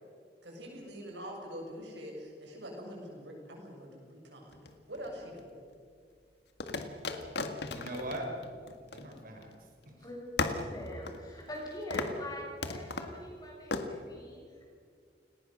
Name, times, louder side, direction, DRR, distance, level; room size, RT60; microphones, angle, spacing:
voice 1, 0.4-4.6 4.9-5.5, equal, 90° right, 1 dB, 7.4 m, -44 dB
sound 1, 4.5-5.4 6.6-9.6 9.8-9.9 10.4-11.6 11.9-12.2 12.6-13.2 13.7-13.9, left 3 dB, 65° left, 1.9 m, -36 dB
voice 2, 7.6-9.5, right 1 dB, 55° right, 3 dB, 4.7 m, -41 dB
voice 3, 10.4-14.6, left 1 dB, 25° left, -2 dB, 7.5 m, -43 dB
29.5 x 19.5 x 6.7 m, 2.2 s
head